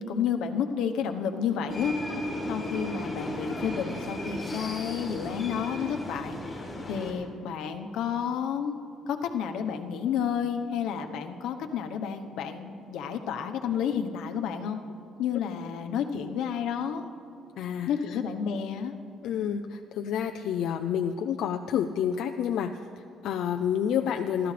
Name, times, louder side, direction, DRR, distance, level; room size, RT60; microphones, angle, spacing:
voice 1, 0.0-1.9 2.5-6.4 6.9-8.8 9.1-14.8 15.2-17.1 17.9-18.9, left 7 dB, 80° left, 5 dB, 1.1 m, -30 dB
sound 1, 1.7-7.1, left 1 dB, 15° left, 2.8 m, -35 dB
voice 2, 17.6-18.2 19.2-24.5, left 8 dB, 65° left, 5 dB, 0.5 m, -29 dB
28.5 x 13.0 x 3.4 m, 2.6 s
cardioid pair, 175°, 0 cm